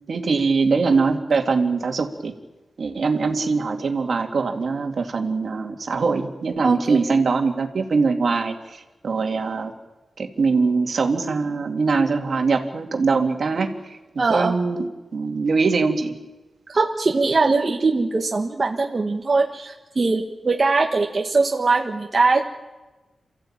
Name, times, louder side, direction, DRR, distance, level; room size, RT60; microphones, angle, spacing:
voice 1, 0.1-2.3 2.8-9.7 10.2-14.0 14.3-16.1, right 4 dB, 60° right, 4 dB, 2.3 m, -22 dB
voice 2, 6.6-7.0 14.2-14.5 16.7-22.4, right 3 dB, 35° right, 1 dB, 1.6 m, -21 dB
28.5 x 14.5 x 8.9 m, 1.1 s
wide cardioid pair, 130°, 0 cm